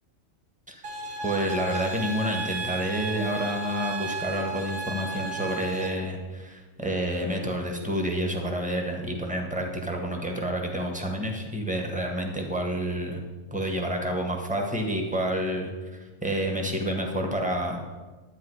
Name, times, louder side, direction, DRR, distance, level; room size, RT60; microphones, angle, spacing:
sound 1, 0.8-5.9, right 3 dB, 80° right, 1.5 m, -34 dB
voice 1, 1.2-13.2 13.5-18.0, equal, 5° right, 2 dB, 1.4 m, -29 dB
11.0 x 9.4 x 4.8 m, 1.3 s
omnidirectional pair, 1.4 m